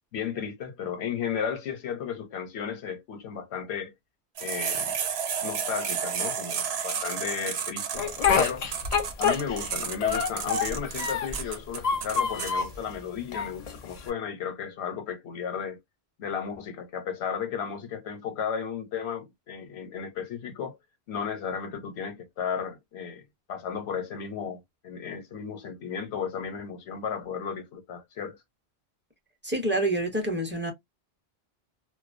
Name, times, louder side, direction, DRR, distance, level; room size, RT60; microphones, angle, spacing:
voice 1, 0.1-3.9 4.4-5.0 5.4-8.6 9.2-15.8 16.2-20.8 21.1-23.2 23.5-28.4, left 7 dB, 85° left, 0.9 m, -34 dB
sound 1, 4.4-12.5, right 7 dB, 75° right, 0.8 m, -32 dB
Speech, 8.0-9.7 10.0-11.4 11.8-12.8 13.3-14.1, left 6 dB, 50° left, 0.5 m, -26 dB
voice 2, 29.4-30.7, right 1 dB, 15° right, 0.6 m, -27 dB
2.3 x 2.2 x 2.5 m
omnidirectional pair, 1.1 m